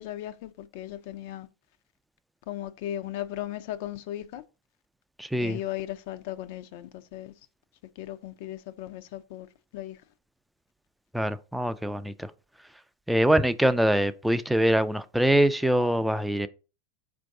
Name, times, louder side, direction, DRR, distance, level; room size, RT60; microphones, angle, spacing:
voice 1, 0.0-1.5 2.5-4.4 5.4-7.3 8.0-9.5 9.7-10.0, left 13 dB, 60° left, 0.4 m, -37 dB
voice 2, 5.2-5.6 11.1-12.3 13.1-16.5, right 1 dB, 5° right, 0.3 m, -24 dB
4.5 x 2.6 x 4.6 m
supercardioid pair, 125°, 0 cm